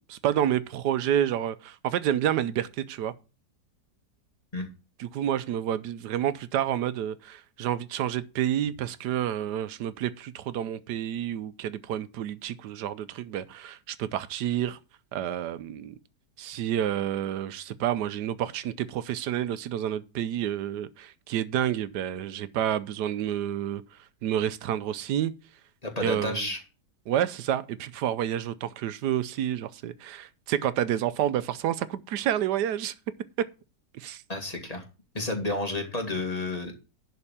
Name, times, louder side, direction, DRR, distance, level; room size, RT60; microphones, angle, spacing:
voice 1, 0.1-3.1 5.0-14.8 15.1-16.0 16.4-25.3 26.0-26.5 27.1-32.9 33.9-34.2, right 10 dB, 80° right, 1.3 m, -29 dB
voice 2, 25.8-26.6 34.3-34.8 35.1-36.7, left 2 dB, 25° left, 2.2 m, -31 dB
11.0 x 4.4 x 7.1 m
omnidirectional pair, 1.7 m